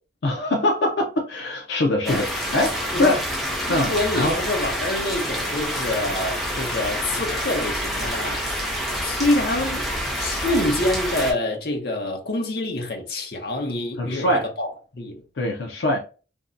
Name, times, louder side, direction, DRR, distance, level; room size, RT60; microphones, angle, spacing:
voice 1, 0.2-3.2 3.7-4.3 14.0-14.5 15.4-16.0, left 1 dB, 80° left, 0.5 m, -23 dB
sound 1, 2.1-11.3, equal, ahead, 0.5 m, -27 dB
voice 2, 3.7-8.7 9.0-9.9 10.2-15.2, left 1 dB, 55° left, 0.8 m, -26 dB
2.6 x 2.2 x 3.7 m
head